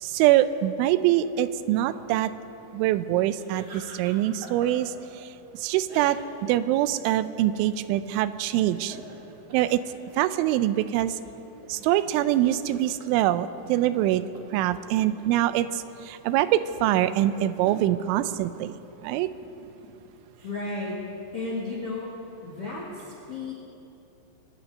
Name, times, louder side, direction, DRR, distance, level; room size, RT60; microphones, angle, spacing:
voice 1, 0.0-2.3 2.7-5.3 5.5-9.0 9.5-9.8 10.2-11.2 11.7-14.2 14.5-18.7 19.0-19.3, right 13 dB, 85° right, 13 dB, 3.0 m, -24 dB
sound 1, 3.3-5.0 5.9-6.5 6.8-6.9 8.4-10.6 11.0-11.2 11.6-15.4 15.9-18.0 19.0-20.5, right 2 dB, 50° right, 2.8 m, -47 dB
voice 2, 20.4-21.0 21.3-22.1 22.4-23.5, left 3 dB, 65° left, -4 dB, 1.4 m, -33 dB
24.5 x 10.0 x 5.2 m, 2.9 s
omnidirectional pair, 5.5 m